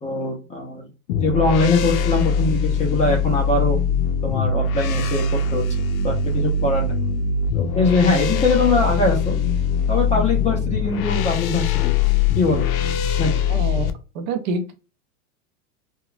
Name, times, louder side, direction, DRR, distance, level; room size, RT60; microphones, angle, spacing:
voice 1, 0.0-0.8 1.2-3.8 4.2-5.6 6.0-7.0 7.5-9.3 9.9-11.9 12.4-12.7 13.2-13.3, left 3 dB, 15° left, 0 dB, 0.5 m, -22 dB
sound 1, 1.1-13.9, left 5 dB, 70° left, 0.5 m, -22 dB
voice 2, 13.5-13.9 14.1-14.7, right 4 dB, 45° right, 7 dB, 0.5 m, -26 dB
2.8 x 2.2 x 2.4 m, 0.32 s
hypercardioid pair, 130°, 44 cm